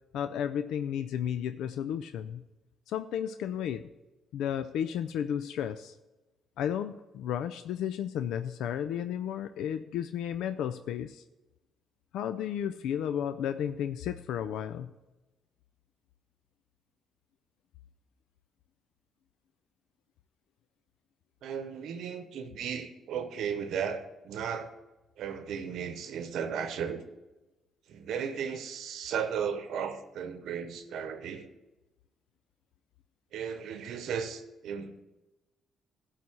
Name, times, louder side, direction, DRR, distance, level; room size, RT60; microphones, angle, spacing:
voice 1, 0.1-2.4 2.9-3.8 4.3-5.9 6.6-11.2 12.1-14.9, left 9 dB, 85° left, 0.4 m, -33 dB
voice 2, 21.4-24.7 25.2-27.0 27.9-31.5 33.3-35.0, right 7 dB, 80° right, 0.8 m, -35 dB
12.0 x 4.2 x 7.7 m
cardioid pair, 90°, 0 cm